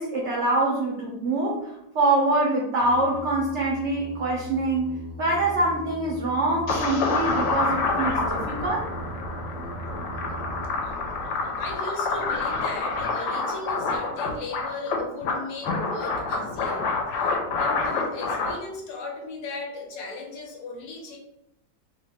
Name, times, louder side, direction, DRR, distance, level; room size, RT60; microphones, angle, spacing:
voice 1, 0.0-8.9, right 2 dB, 85° right, -2 dB, 0.6 m, -25 dB
Singing, 2.8-10.7, right 3 dB, 40° right, 0.4 m, -39 dB
sound 1, 6.7-18.5, left 3 dB, 90° left, 1.3 m, -27 dB
voice 2, 11.6-16.9 17.1-21.2, left 3 dB, 70° left, -1 dB, 1.2 m, -37 dB
3.1 x 2.1 x 3.4 m, 0.82 s
omnidirectional pair, 1.9 m